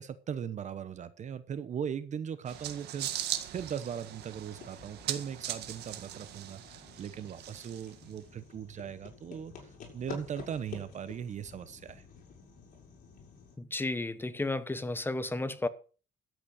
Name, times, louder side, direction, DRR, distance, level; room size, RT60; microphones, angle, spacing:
voice 1, 0.0-3.1 3.5-12.0, right 8 dB, 45° right, 1.0 m, -39 dB
sound 1, 2.5-8.2, right 12 dB, 75° right, 1.8 m, -40 dB
sound 2, 3.9-13.6, left 5 dB, 50° left, 5.6 m, -50 dB
voice 2, 13.6-15.7, left 2 dB, 10° left, 1.0 m, -33 dB
12.5 x 8.4 x 6.5 m
cardioid pair, 110°, 17 cm